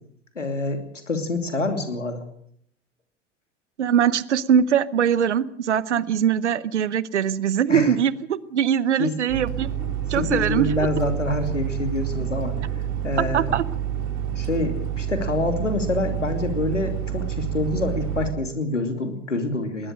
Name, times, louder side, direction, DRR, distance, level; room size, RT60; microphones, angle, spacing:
voice 1, 0.3-2.2 7.7-7.9 9.0-9.1 9.8-12.5 13.0-13.6 14.4-19.9, left 2 dB, 85° left, 7 dB, 2.9 m, -26 dB
voice 2, 3.8-9.7 10.1-10.9 13.2-13.6, right 8 dB, 70° right, 20 dB, 1.0 m, -22 dB
sound 1, 9.3-18.3, right 10 dB, 45° right, 4.4 m, -28 dB
20.5 x 19.5 x 6.5 m, 0.67 s
figure-of-eight pair, 80°, 36 cm